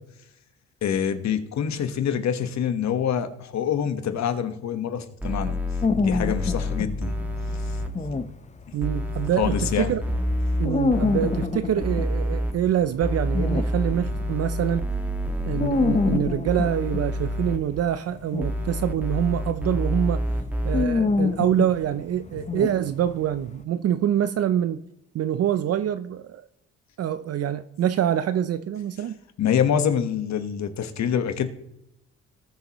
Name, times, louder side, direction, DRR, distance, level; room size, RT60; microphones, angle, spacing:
voice 1, 0.8-5.6 6.0-7.1 7.5-7.8 9.4-9.9 29.4-31.5, left 8 dB, 65° left, 1.3 m, -26 dB
sound 1, 5.2-7.9 8.8-11.5 11.8-12.5 13.0-16.2 16.5-17.6 18.4-20.9, equal, 5° right, 1.4 m, -28 dB
sound 2, 5.8-14.4 14.9-23.4, left 4 dB, 25° left, 0.8 m, -28 dB
voice 2, 8.7-10.0 10.6-14.9 15.5-20.2 20.6-24.8 25.1-26.4 27.0-29.2, right 10 dB, 55° right, 0.5 m, -25 dB
19.0 x 7.0 x 3.0 m
cardioid pair, 90°, 30 cm